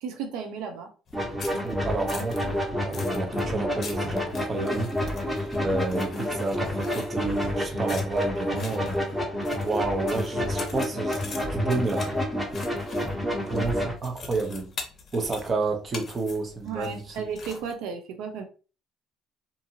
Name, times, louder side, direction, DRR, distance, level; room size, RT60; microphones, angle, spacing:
voice 1, 0.0-0.9 16.6-18.4, right 6 dB, 90° right, 0.4 m, -34 dB
sound 1, 1.1-17.7, left 4 dB, 45° left, 0.7 m, -44 dB
sound 2, 1.1-13.9, left 1 dB, 5° right, 0.9 m, -29 dB
voice 2, 1.5-4.9 5.6-9.0 9.6-12.1 13.5-14.7 15.1-17.3, right 3 dB, 35° right, 0.7 m, -30 dB
2.5 x 2.5 x 2.7 m
cardioid pair, 110°, 0 cm